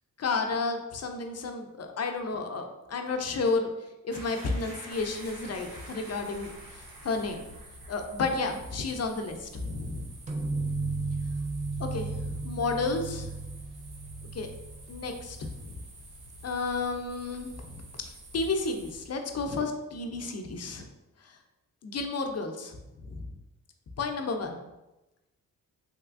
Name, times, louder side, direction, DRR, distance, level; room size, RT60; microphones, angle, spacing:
voice 1, 0.2-3.7 4.0-7.5 7.9-10.1 11.8-13.3 14.3-14.5 14.9-15.8 16.4-17.8 18.0-20.9 21.2-21.3 21.8-23.3 24.0-24.6, left 3 dB, 45° left, 5 dB, 0.5 m, -32 dB
sound 1, 4.1-8.0 8.3-8.5, right 1 dB, 70° right, 1.1 m, -48 dB
sound 2, 4.9-19.1, right 1 dB, 90° right, 0.7 m, -49 dB
sound 3, 10.3-15.8, right 3 dB, 20° right, 0.5 m, -35 dB
3.3 x 2.9 x 2.4 m, 1.0 s
cardioid pair, 50°, 37 cm